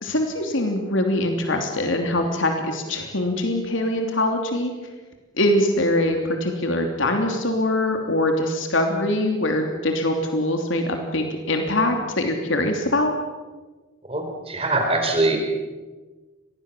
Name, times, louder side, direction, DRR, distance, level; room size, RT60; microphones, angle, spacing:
voice 1, 0.0-4.7 5.4-13.1, left 1 dB, 80° left, 4 dB, 3.1 m, -23 dB
voice 2, 14.1-15.4, right 2 dB, 30° right, 3 dB, 4.6 m, -22 dB
25.5 x 20.0 x 7.3 m, 1.3 s
head